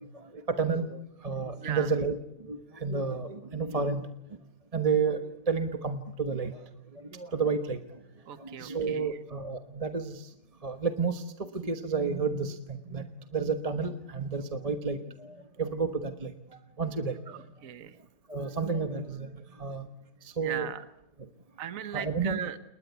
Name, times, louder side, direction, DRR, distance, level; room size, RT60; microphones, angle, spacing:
voice 1, 0.5-2.2 2.5-4.0 4.7-5.2 5.5-6.6 7.1-7.8 8.4-10.3 10.6-11.2 11.5-13.1 13.3-16.3 16.8-17.2 18.3-19.3 19.6-19.9 20.4-20.7 21.9-22.4, right 5 dB, 25° right, 8 dB, 1.2 m, -30 dB
voice 2, 8.3-9.2 17.3-17.9 20.4-20.8 21.6-22.6, right 9 dB, 65° right, 11 dB, 1.5 m, -38 dB
29.5 x 21.0 x 8.2 m, 0.80 s
omnidirectional pair, 1.6 m